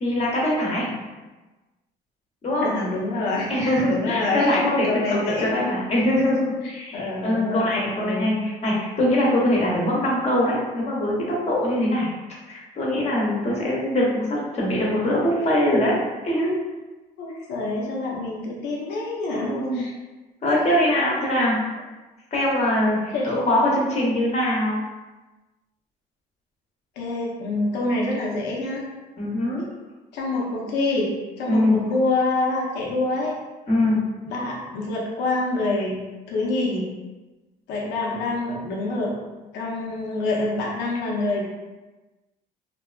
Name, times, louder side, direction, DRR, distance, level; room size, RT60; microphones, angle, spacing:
voice 1, 0.0-0.9 2.4-2.7 3.5-12.1 12.5-16.0 16.2-16.5 19.3-19.9 20.4-21.6 22.3-24.8 29.2-29.6 31.5-31.8 33.7-34.0, left 1 dB, 40° left, -4 dB, 0.8 m, -22 dB
voice 2, 2.6-5.5 6.9-8.5 14.1-14.2 17.2-19.9 20.5-20.6 20.9-21.0 23.1-23.3 27.0-28.9 30.1-33.3 34.3-36.0 36.3-36.8 37.7-39.1 39.5-41.4, left 2 dB, 85° left, -3 dB, 0.7 m, -26 dB
2.6 x 2.4 x 2.3 m, 1.2 s
cardioid pair, 110°, 17 cm